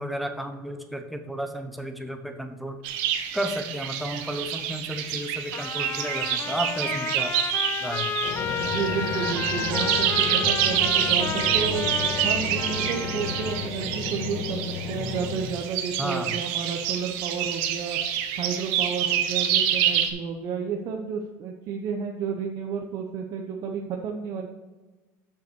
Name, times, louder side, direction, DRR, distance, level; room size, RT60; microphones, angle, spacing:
voice 1, 0.0-2.8 3.3-7.3 7.8-8.2 16.0-16.4, equal, ahead, 5 dB, 1.0 m, -32 dB
sound 1, 2.8-20.1, right 9 dB, 75° right, 1.0 m, -27 dB
Trumpet, 5.5-13.7, left 8 dB, 30° left, 0.4 m, -33 dB
sound 2, 8.2-15.4, left 5 dB, 80° left, 2.3 m, -33 dB
voice 2, 8.6-11.9 12.2-14.6 14.9-18.0 18.4-24.5, right 6 dB, 50° right, 2 dB, 0.9 m, -31 dB
7.0 x 5.8 x 6.1 m, 1.2 s
cardioid pair, 130°, 8 cm